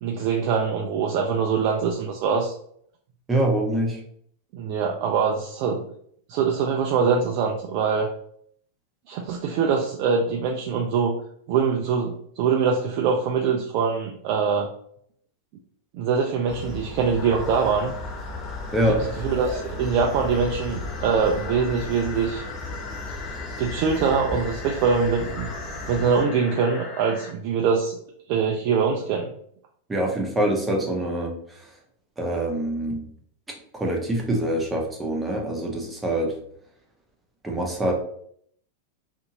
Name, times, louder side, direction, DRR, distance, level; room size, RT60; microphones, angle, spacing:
voice 1, 0.0-2.5 4.5-5.8 6.3-8.1 9.1-11.1 11.5-14.7 15.9-17.9 19.2-22.4 23.6-25.5 25.9-28.0 28.3-29.3, right 5 dB, 50° right, 1 dB, 0.4 m, -23 dB
voice 2, 3.3-4.0 18.7-19.0 29.9-31.6 32.2-33.0 33.7-36.3 37.4-37.9, right 1 dB, 15° right, 0 dB, 0.8 m, -25 dB
sound 1, 16.5-26.2, left 2 dB, 10° left, 1.1 m, -35 dB
sound 2, 17.2-27.3, left 4 dB, 35° left, 0.6 m, -40 dB
2.6 x 2.5 x 2.8 m, 0.66 s
figure-of-eight pair, 95°, 0 cm